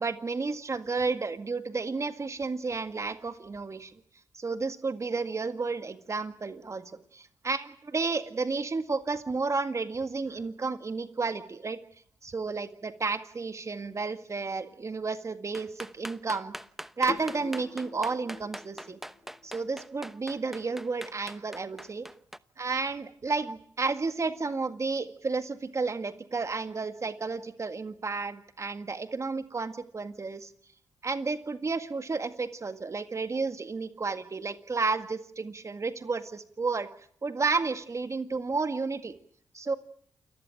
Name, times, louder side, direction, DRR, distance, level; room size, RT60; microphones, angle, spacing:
voice 1, 0.0-3.9 4.3-11.8 12.2-16.5 17.0-19.0 19.4-22.1 22.6-30.5 31.0-36.9 37.2-39.1 39.7-39.8, right 4 dB, 40° right, 9 dB, 1.9 m, -32 dB
sound 1, 15.5-22.4, equal, 5° right, 1.0 m, -42 dB
sound 2, 17.1-19.9, left 4 dB, 40° left, 1.7 m, -43 dB
29.0 x 15.5 x 9.1 m, 0.65 s
supercardioid pair, 50°, 8 cm